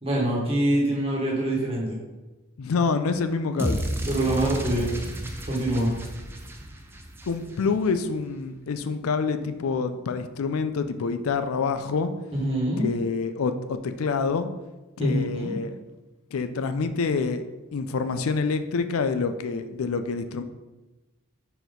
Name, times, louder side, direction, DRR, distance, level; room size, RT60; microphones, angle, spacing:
voice 1, 0.0-2.0 4.1-4.9 5.5-5.9 12.3-12.9 15.0-15.5, right 1 dB, 25° right, -3 dB, 1.3 m, -25 dB
voice 2, 2.6-3.8 7.3-12.1 12.8-14.5 15.0-15.8 16.3-20.4, left 4 dB, 85° left, 10 dB, 0.4 m, -27 dB
sound 1, 3.6-7.8, right 1 dB, 10° right, 0.5 m, -32 dB
4.5 x 4.2 x 5.1 m, 1.1 s
head